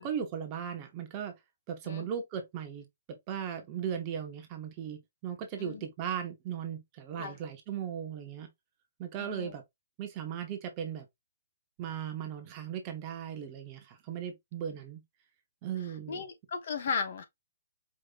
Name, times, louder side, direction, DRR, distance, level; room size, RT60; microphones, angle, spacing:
voice 1, 0.0-1.4 1.7-2.9 3.3-8.5 9.0-9.6 10.0-11.1 11.8-15.0 15.6-16.2, right 8 dB, 20° right, 0.8 m, -37 dB
voice 2, 9.2-9.6 16.1-17.2, left 5 dB, 45° left, 0.9 m, -36 dB
5.0 x 2.7 x 2.4 m
hypercardioid pair, 175°, 0 cm